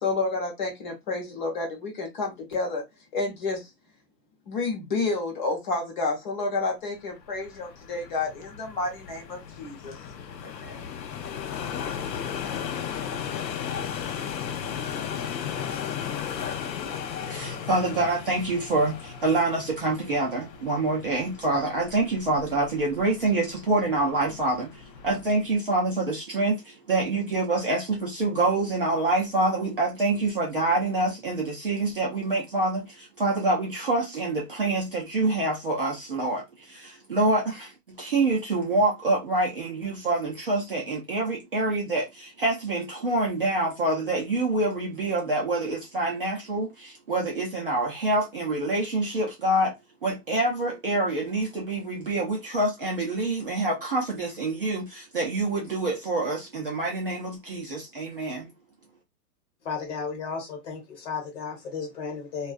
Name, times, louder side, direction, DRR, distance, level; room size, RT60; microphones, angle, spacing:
voice 1, 0.0-2.8 3.1-3.7 4.5-10.0 10.6-10.8, left 3 dB, 30° left, 0.8 m, -30 dB
sound 1, 7.2-25.5, left 8 dB, 85° left, 0.7 m, -36 dB
voice 2, 16.9-49.7 50.0-58.5, right 2 dB, 35° right, 0.4 m, -26 dB
voice 3, 59.6-62.5, left 5 dB, 45° left, 1.1 m, -34 dB
2.3 x 2.3 x 2.4 m
hypercardioid pair, 160°, 50 cm